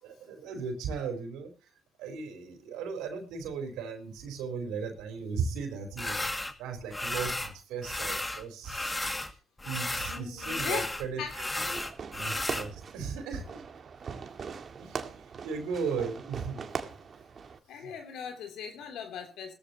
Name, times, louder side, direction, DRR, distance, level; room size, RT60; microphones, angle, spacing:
voice 1, 0.0-1.5 2.0-6.2 6.6-8.9 9.6-11.2 11.7-11.8 12.1-13.6 14.8-16.6 17.8-17.9, right 5 dB, 85° right, 7 dB, 4.1 m, -36 dB
sound 1, 6.0-6.5 6.9-7.5 7.8-9.3 9.6-12.7, left 2 dB, 15° left, 2.1 m, -34 dB
voice 2, 10.1-11.4 17.7-19.5, left 7 dB, 75° left, 6 dB, 3.1 m, -39 dB
Fireworks, 11.6-17.6, right 6 dB, 50° right, 1.9 m, -41 dB
17.5 x 14.0 x 2.9 m, 0.31 s
supercardioid pair, 65°, 0 cm